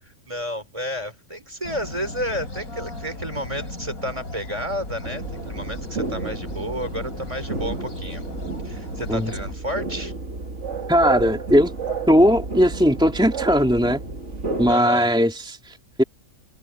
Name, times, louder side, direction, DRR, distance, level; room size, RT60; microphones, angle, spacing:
voice 1, 0.3-8.3 8.6-10.1 14.7-15.2, equal, 20° right, 4.4 m, -31 dB
sound 1, 1.6-9.5, left 1 dB, 75° left, 7.2 m, -36 dB
sound 2, 5.0-14.8, right 4 dB, 55° right, 2.6 m, -31 dB
voice 2, 10.9-11.7 12.1-14.0 14.6-16.0, equal, 5° right, 2.9 m, -18 dB
omnidirectional pair, 1.5 m